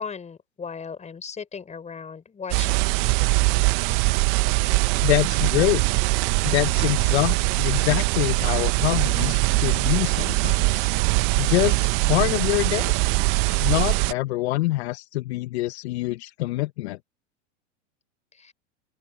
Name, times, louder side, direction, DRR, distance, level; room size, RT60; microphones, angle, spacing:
voice 1, 0.0-3.4 18.3-18.5, left 6 dB, 20° left, 5.4 m, -37 dB
sound 1, 2.5-14.1, right 27 dB, 50° right, 1.1 m, -22 dB
voice 2, 5.0-5.8 6.4-10.9 11.4-12.9 13.6-17.0, left 19 dB, 65° left, 1.1 m, -25 dB
open air
hypercardioid pair, 105°, 36 cm